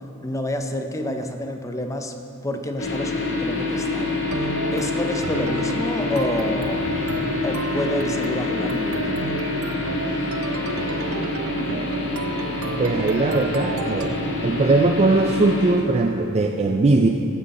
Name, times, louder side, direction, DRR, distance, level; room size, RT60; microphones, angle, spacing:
voice 1, 0.2-2.1 2.4-4.2 4.7-6.9 7.4-9.4, left 1 dB, 15° left, 5 dB, 0.6 m, -28 dB
sound 1, 2.8-15.7, left 2 dB, 65° left, 1.6 m, -26 dB
sound 2, 4.3-14.1, right 4 dB, 80° right, 0.6 m, -33 dB
voice 2, 12.8-14.2 14.4-17.1, right 3 dB, 30° right, 3 dB, 0.4 m, -20 dB
15.0 x 7.6 x 4.2 m, 2.6 s
head